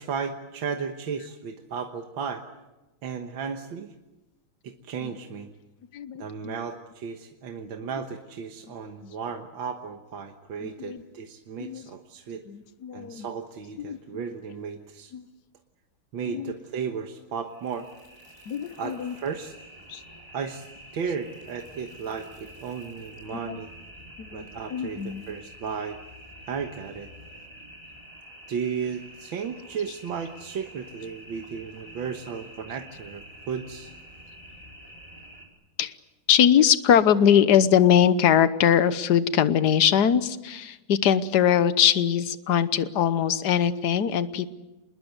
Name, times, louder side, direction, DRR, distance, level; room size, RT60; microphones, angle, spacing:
voice 1, 0.0-2.4 3.0-3.9 4.6-5.5 6.2-12.4 12.9-15.1 16.1-17.9 18.8-19.5 20.3-20.7 20.9-23.7 24.3-26.0 26.5-27.1 28.5-33.9, right 6 dB, 75° right, 4 dB, 2.0 m, -34 dB
voice 2, 5.9-6.5 9.0-9.1 10.6-11.0 11.6-11.9 12.5-13.3 13.8-14.0 15.1-15.2 16.3-16.5 18.5-19.1 19.9-20.0 23.3-23.6 24.2-24.4 24.7-25.2 35.8-35.9 36.3-44.5, left 9 dB, 60° left, 13 dB, 1.5 m, -22 dB
sound 1, 17.4-35.5, equal, 10° right, 4.8 m, -47 dB
26.5 x 21.0 x 8.1 m, 1.1 s
omnidirectional pair, 2.2 m